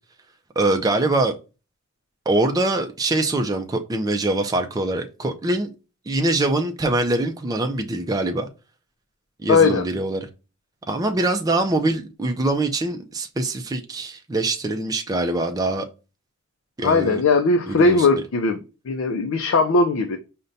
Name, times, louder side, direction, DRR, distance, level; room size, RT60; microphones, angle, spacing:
voice 1, 0.6-1.3 2.3-5.7 6.1-8.5 9.4-10.3 10.9-15.9 16.8-17.2 17.7-18.2, right 2 dB, 20° right, 0.4 m, -23 dB
voice 2, 9.5-9.9 16.8-18.6 18.9-20.2, left 3 dB, 70° left, 0.4 m, -19 dB
5.1 x 2.1 x 2.6 m
head